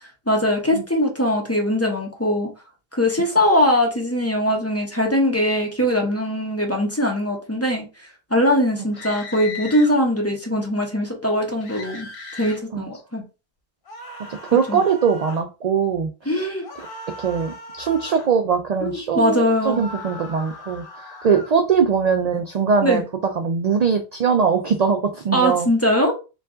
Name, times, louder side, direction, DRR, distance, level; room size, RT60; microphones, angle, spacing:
voice 1, 0.3-2.5 2.9-7.9 8.3-12.1 12.4-13.2 14.7-14.8 16.2-16.6 18.8-19.8 22.8-23.0 25.3-26.1, left 1 dB, 15° left, 1.0 m, -21 dB
sound 1, 8.9-9.9 11.6-12.6 13.9-15.5 16.6-18.3 19.4-21.6, left 2 dB, 65° left, 1.2 m, -38 dB
voice 2, 14.3-16.1 16.4-16.5 17.2-20.8 21.2-23.0 23.4-25.7, right 6 dB, 55° right, 0.5 m, -21 dB
4.4 x 2.4 x 3.8 m
omnidirectional pair, 1.0 m